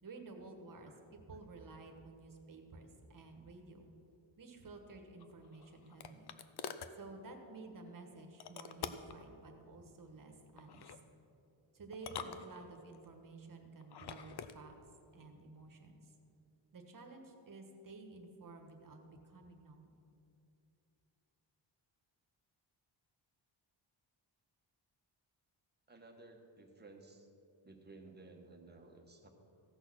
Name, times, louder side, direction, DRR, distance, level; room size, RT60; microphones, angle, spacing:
voice 1, 0.0-3.9 4.4-6.3 7.0-11.0 11.7-14.7 15.1-16.1 16.7-19.9, right 3 dB, 45° right, 4 dB, 1.4 m, -53 dB
sound 1, 5.2-7.0 8.4-9.2 10.6-11.0 11.9-13.0 13.8-14.6, left 7 dB, 55° left, 0.6 m, -46 dB
voice 2, 25.9-27.3 27.6-29.3, right 2 dB, 20° right, 2 dB, 1.2 m, -56 dB
15.5 x 6.4 x 6.2 m, 2.8 s
wide cardioid pair, 165°, 48 cm